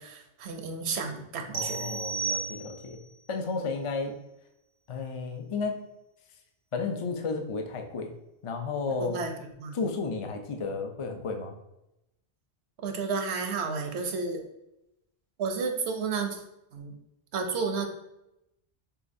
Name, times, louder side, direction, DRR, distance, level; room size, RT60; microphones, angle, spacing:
voice 1, 0.0-2.0 9.0-9.3 9.6-9.8 12.8-14.4 15.4-16.4 16.7-16.9 17.3-17.9, right 4 dB, 85° right, 4 dB, 0.9 m, -32 dB
voice 2, 1.5-3.0 3.3-4.2 4.9-5.8 6.7-8.1 8.4-9.2 9.7-11.6, left 4 dB, 45° left, 4 dB, 0.4 m, -32 dB
sound 1, 1.5-3.1, right 5 dB, 50° right, 0.5 m, -33 dB
6.7 x 2.4 x 2.6 m, 0.88 s
omnidirectional pair, 1.1 m